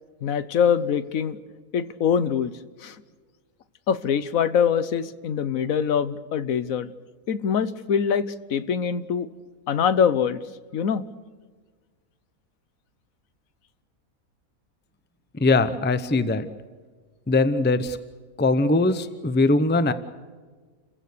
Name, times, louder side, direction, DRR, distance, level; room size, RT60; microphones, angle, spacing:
voice 1, 0.2-1.4 1.7-2.5 2.8-3.0 3.9-6.9 7.3-9.3 9.7-10.4 10.7-11.0, left 7 dB, 65° left, 14 dB, 1.3 m, -23 dB
voice 2, 15.3-16.5 17.3-18.0 18.4-19.9, left 2 dB, 10° left, 12 dB, 0.6 m, -21 dB
29.5 x 16.0 x 6.8 m, 1.5 s
omnidirectional pair, 1.6 m